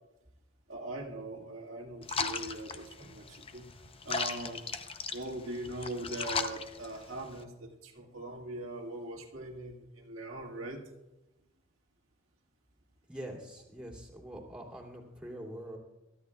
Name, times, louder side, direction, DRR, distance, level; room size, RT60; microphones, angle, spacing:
voice 1, 0.7-3.7 4.0-4.8 5.1-10.8, right 1 dB, 90° right, -1 dB, 1.8 m, -41 dB
sound 1, 2.0-7.4, left 5 dB, 30° left, 0.6 m, -37 dB
voice 2, 13.1-15.8, right 1 dB, 5° right, -2 dB, 2.6 m, -44 dB
22.5 x 13.0 x 2.3 m, 0.99 s
head